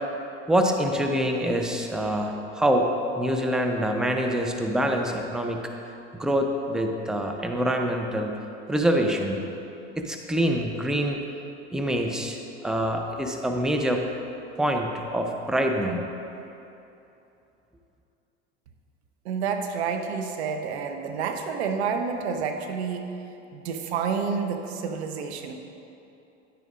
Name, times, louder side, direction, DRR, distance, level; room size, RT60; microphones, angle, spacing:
voice 1, 0.5-2.9 3.2-5.6 6.1-8.4 8.7-9.4 10.0-11.2 11.7-14.1 14.6-16.1, equal, ahead, 3 dB, 0.6 m, -25 dB
voice 2, 19.2-23.0 23.5-25.5, right 6 dB, 75° right, 5 dB, 0.8 m, -29 dB
10.5 x 9.0 x 2.5 m, 2.8 s
hypercardioid pair, 85°, 33 cm